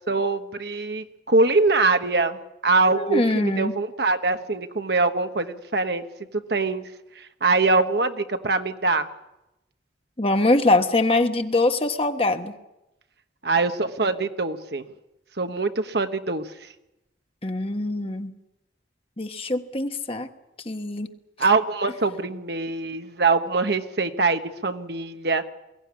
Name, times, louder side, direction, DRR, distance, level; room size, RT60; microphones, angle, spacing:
voice 1, 0.1-6.0 6.3-6.8 7.2-9.1 13.4-14.9 15.4-16.7 21.4-25.4, right 3 dB, 60° right, 8 dB, 1.2 m, -23 dB
voice 2, 2.9-3.7 10.2-12.5 17.4-18.3 19.2-20.3 20.6-21.1, left 2 dB, 30° left, 7 dB, 1.2 m, -23 dB
22.0 x 17.0 x 9.7 m, 0.96 s
head